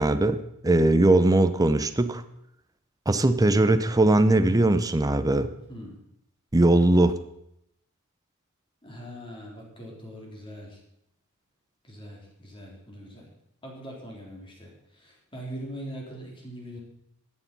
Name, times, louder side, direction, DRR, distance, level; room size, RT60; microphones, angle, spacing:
voice 1, 0.0-2.2 3.1-5.5 6.5-7.2, right 2 dB, 15° right, 11 dB, 0.7 m, -20 dB
voice 2, 8.8-10.8 11.8-13.3 13.6-16.8, equal, 25° left, -1 dB, 3.6 m, -41 dB
13.5 x 9.5 x 5.4 m, 0.79 s
head